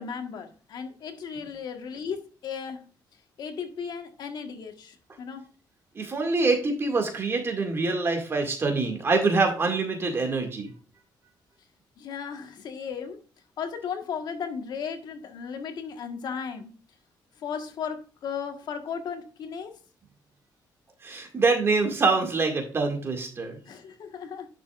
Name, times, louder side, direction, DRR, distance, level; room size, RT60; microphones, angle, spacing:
voice 1, 0.0-2.8 3.4-5.5 12.0-13.2 13.6-16.7 17.4-19.7 23.7-24.5, left 6 dB, 65° left, 1.4 m, -35 dB
voice 2, 6.0-10.7 21.0-23.6, right 3 dB, 30° right, 2.1 m, -25 dB
10.5 x 6.7 x 2.5 m
cardioid pair, 130°, 8 cm